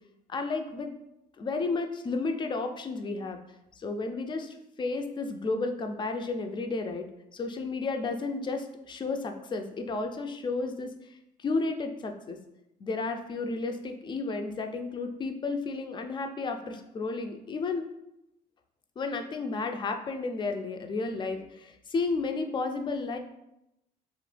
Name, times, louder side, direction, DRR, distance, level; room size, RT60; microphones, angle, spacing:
voice 1, 0.3-0.9 1.4-3.4 3.8-7.1 7.3-12.4 12.8-17.9 19.0-23.2, left 3 dB, 30° left, 6 dB, 0.3 m, -32 dB
2.9 x 2.2 x 3.2 m, 0.86 s
cardioid pair, 110°, 17 cm